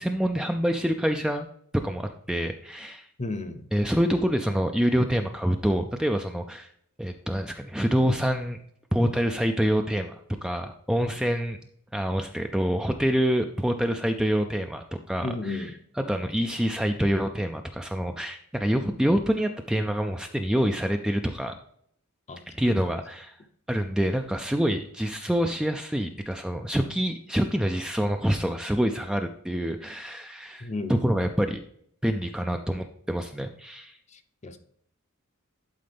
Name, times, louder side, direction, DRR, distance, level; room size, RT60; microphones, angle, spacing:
voice 1, 0.0-1.5 1.8-3.1 3.7-6.7 7.0-8.6 8.9-11.6 11.9-15.6 16.1-21.6 22.6-23.4 23.7-30.7 31.0-31.6 32.0-33.9, equal, 5° right, 5 dB, 0.4 m, -26 dB
voice 2, 3.2-3.7 15.2-15.8 22.3-22.8 30.6-31.1 34.1-34.6, left 2 dB, 35° left, 9 dB, 0.7 m, -34 dB
11.5 x 4.3 x 3.5 m, 0.66 s
head